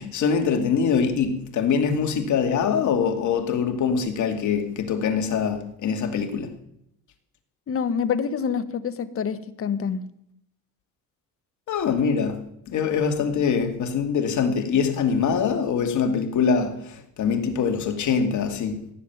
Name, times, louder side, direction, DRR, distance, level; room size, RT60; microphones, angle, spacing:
voice 1, 0.0-6.5 11.7-18.9, left 6 dB, 55° left, 2.5 m, -24 dB
voice 2, 7.7-10.0, left 6 dB, 40° left, 1.3 m, -26 dB
16.5 x 7.6 x 9.4 m
cardioid pair, 100°, 36 cm